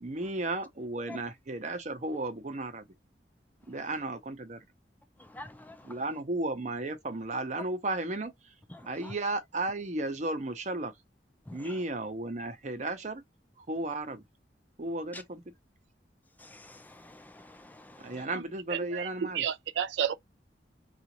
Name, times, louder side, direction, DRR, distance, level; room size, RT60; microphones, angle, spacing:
voice 1, 0.0-2.8 3.7-4.6 5.8-8.3 8.8-10.9 11.5-13.2 13.6-14.2 14.8-15.4 18.0-19.4, right 2 dB, 40° right, 0.7 m, -34 dB
voice 2, 5.3-5.8 8.7-9.1 11.5-11.7 15.1-15.2 16.4-18.2, left 2 dB, 10° left, 0.3 m, -47 dB
voice 3, 18.7-20.1, right 8 dB, 75° right, 0.3 m, -31 dB
3.8 x 2.4 x 2.9 m
head